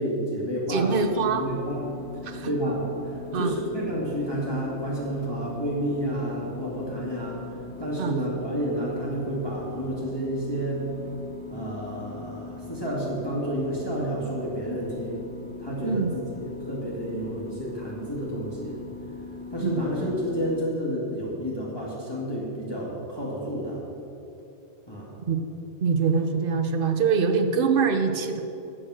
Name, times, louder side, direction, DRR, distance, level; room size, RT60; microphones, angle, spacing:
voice 1, 0.0-1.9 2.4-7.4 7.8-10.8 11.5-15.2 15.6-18.8 19.5-23.8 24.9-25.1, equal, 20° left, -6 dB, 2.1 m, -30 dB
voice 2, 0.7-1.4 2.2-2.5 3.3-3.5 8.0-8.1 15.8-16.1 19.6-19.8 25.3-25.4 25.8-28.4, right 5 dB, 55° right, 6 dB, 1.0 m, -24 dB
sound 1, 0.9-20.6, left 3 dB, 70° right, 1.5 m, -41 dB
13.0 x 7.7 x 6.3 m, 2.9 s
omnidirectional pair, 1.2 m